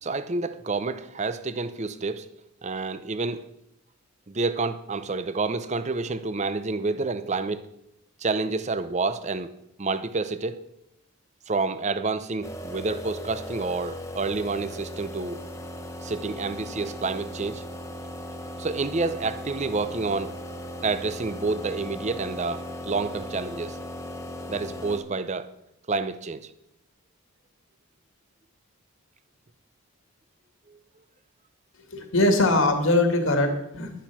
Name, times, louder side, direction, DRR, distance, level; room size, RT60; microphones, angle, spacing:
voice 1, 0.0-2.3 2.6-3.5 4.3-7.7 8.2-9.5 9.8-10.6 11.5-15.4 16.0-17.6 18.6-20.3 20.8-23.8 24.5-25.5 25.9-26.5 30.7-30.8, right 3 dB, 30° right, 0.6 m, -29 dB
sound 1, 12.4-25.0, left 1 dB, 15° left, 1.0 m, -37 dB
voice 2, 31.9-33.9, left 2 dB, 60° left, 2.0 m, -21 dB
11.5 x 10.0 x 6.0 m
head